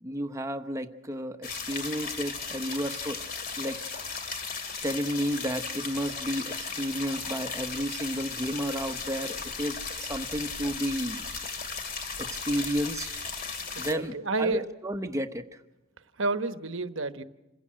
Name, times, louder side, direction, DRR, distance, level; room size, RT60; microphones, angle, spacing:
voice 1, 0.0-3.2 3.6-3.8 4.8-11.2 12.2-13.1 13.8-15.6, equal, 15° right, 8 dB, 0.9 m, -32 dB
sound 1, 1.4-13.9, left 5 dB, 45° left, 2.5 m, -36 dB
voice 2, 13.7-14.7 16.2-17.2, right 3 dB, 60° right, 10 dB, 1.1 m, -30 dB
27.5 x 16.0 x 7.6 m, 1.0 s
head